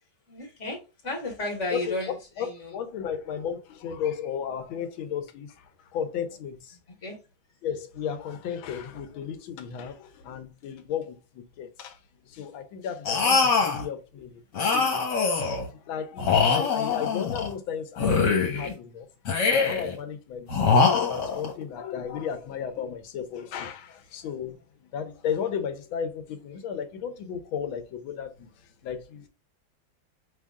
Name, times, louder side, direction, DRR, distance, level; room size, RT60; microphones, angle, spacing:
voice 1, 0.3-2.8 6.3-6.5 7.0-7.2, left 2 dB, 35° left, 2.1 m, -34 dB
voice 2, 2.4-5.6 5.9-6.8 7.6-12.0 12.3-14.9 15.6-19.1 19.5-24.5 24.9-28.5 28.8-29.3, left 7 dB, 90° left, 1.6 m, -34 dB
sound 1, 13.1-13.9 14.6-15.7 16.2-17.5 18.0-18.7 19.3-20.0 20.5-21.5, left 5 dB, 60° left, 1.9 m, -23 dB
5.8 x 3.6 x 2.2 m
omnidirectional pair, 2.2 m